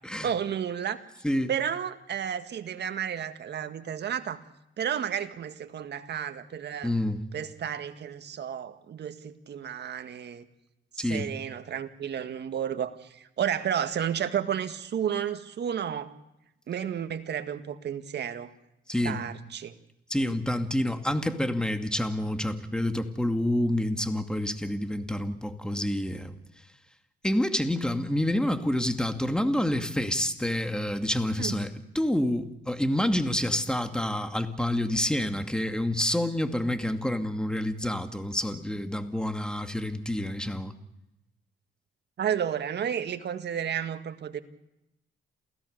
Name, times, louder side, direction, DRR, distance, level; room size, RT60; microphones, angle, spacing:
voice 1, 0.2-1.0 1.5-4.4 4.8-6.9 7.3-10.5 11.0-16.1 16.7-18.5 19.0-19.7 31.4-31.6 42.2-44.4, right 9 dB, 60° right, 9 dB, 1.9 m, -32 dB
voice 2, 6.8-7.2 11.0-11.3 18.9-19.2 20.1-26.3 27.2-40.7, left 1 dB, 5° left, 7 dB, 2.3 m, -28 dB
28.5 x 16.5 x 6.7 m, 0.87 s
cardioid pair, 90°, 20 cm